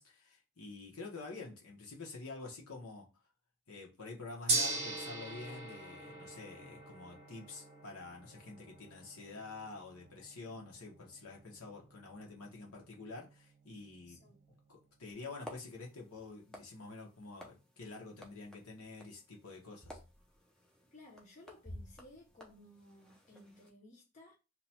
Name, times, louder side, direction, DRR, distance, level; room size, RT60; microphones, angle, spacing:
voice 1, 0.0-3.1 3.7-14.2 14.7-20.0, left 3 dB, 75° left, 1.1 m, -48 dB
Gong, 4.5-14.7, right 3 dB, 30° right, 0.9 m, -42 dB
voice 2, 14.1-14.6 20.9-24.4, left 2 dB, 35° left, 0.8 m, -58 dB
sound 1, 15.1-23.7, equal, 5° left, 0.6 m, -55 dB
2.9 x 2.3 x 4.2 m
head